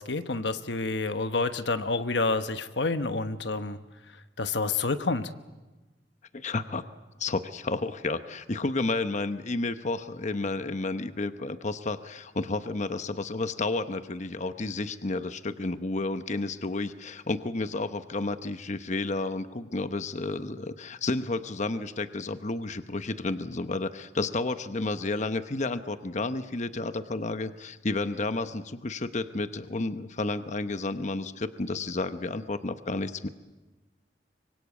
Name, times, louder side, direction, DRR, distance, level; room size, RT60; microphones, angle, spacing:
voice 1, 0.0-3.8 4.4-5.3, left 3 dB, 85° left, 10 dB, 1.1 m, -28 dB
voice 2, 6.3-6.8 7.2-33.3, left 2 dB, 45° left, 10 dB, 0.9 m, -31 dB
25.0 x 24.5 x 8.3 m, 1.2 s
head